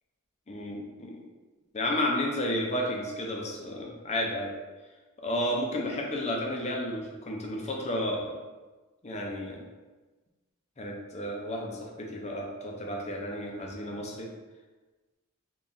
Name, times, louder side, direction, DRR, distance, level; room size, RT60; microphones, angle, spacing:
voice 1, 0.5-1.2 1.7-4.5 5.2-8.4 9.0-9.6 10.8-14.3, left 1 dB, 30° left, 0 dB, 0.5 m, -32 dB
3.7 x 3.0 x 2.6 m, 1.2 s
head